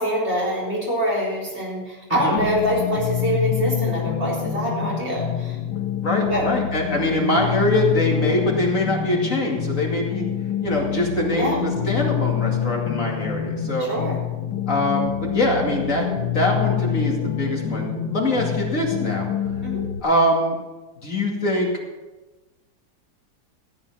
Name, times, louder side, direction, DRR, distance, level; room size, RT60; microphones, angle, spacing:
voice 1, 0.0-5.6 6.2-6.5 11.3-11.6 13.8-14.2 19.6-19.9, equal, 40° right, -4 dB, 4.4 m, -25 dB
sound 1, 2.4-20.0, left 9 dB, 90° left, 1.6 m, -26 dB
voice 2, 6.0-10.3 10.6-13.9 14.7-16.1 16.3-19.2 20.0-20.6 21.0-21.7, left 1 dB, 50° left, -1 dB, 2.8 m, -23 dB
14.5 x 8.7 x 5.7 m, 1.2 s
omnidirectional pair, 1.8 m